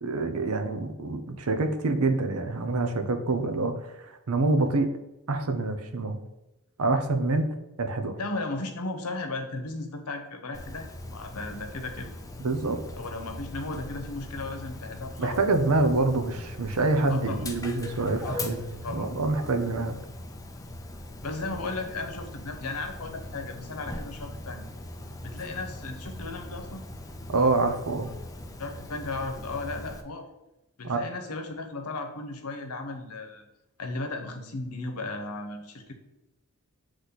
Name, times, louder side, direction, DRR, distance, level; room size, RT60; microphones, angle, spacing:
voice 1, 0.0-4.9 5.3-6.2 6.8-8.2 12.4-12.8 15.2-20.0 27.3-28.1 30.8-31.0, right 3 dB, 75° right, 7 dB, 0.7 m, -26 dB
voice 2, 8.2-12.1 13.0-15.4 17.1-17.5 18.2-18.5 18.8-19.1 21.2-24.6 25.2-26.8 28.6-30.2 30.8-33.4 33.8-35.9, left 2 dB, 85° left, 5 dB, 0.9 m, -35 dB
Dog, 10.5-30.0, left 1 dB, 15° left, 0.5 m, -40 dB
8.1 x 3.2 x 4.1 m, 0.94 s
head